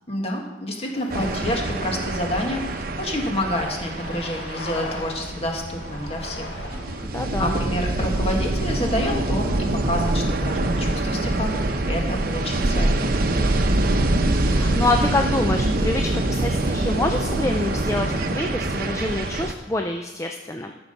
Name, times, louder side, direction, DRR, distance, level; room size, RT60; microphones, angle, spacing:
voice 1, 0.1-6.6 7.4-13.1, left 1 dB, 35° left, 1 dB, 1.8 m, -28 dB
sound 1, 0.9-1.6 2.1-2.2 3.2-3.4 3.8-5.3 5.7-7.1 7.9-9.2, left 2 dB, 65° left, 1.6 m, -38 dB
sound 2, 1.1-19.5, right 2 dB, 55° right, 0.8 m, -24 dB
voice 2, 7.0-7.6 14.4-20.7, left 2 dB, 15° left, 4 dB, 0.5 m, -26 dB
13.5 x 6.2 x 5.3 m, 1.2 s
head